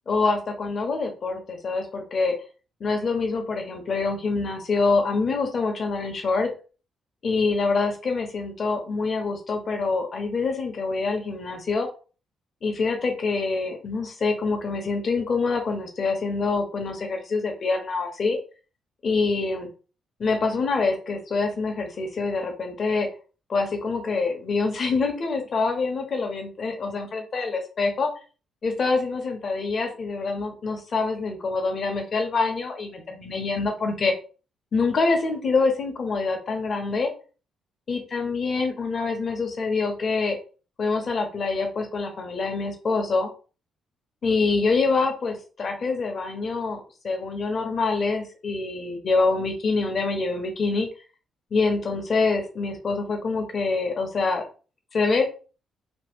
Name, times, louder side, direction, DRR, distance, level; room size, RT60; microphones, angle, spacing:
voice 1, 0.1-2.4 2.8-6.5 7.2-11.9 12.6-18.4 19.0-19.7 20.2-23.1 23.5-28.1 28.6-34.1 34.7-37.1 37.9-40.4 40.8-43.3 44.2-50.9 51.5-54.4 54.9-55.2, left 4 dB, 50° left, 3 dB, 1.1 m, -25 dB
3.0 x 2.2 x 3.6 m, 0.36 s
supercardioid pair, 70°, 0 cm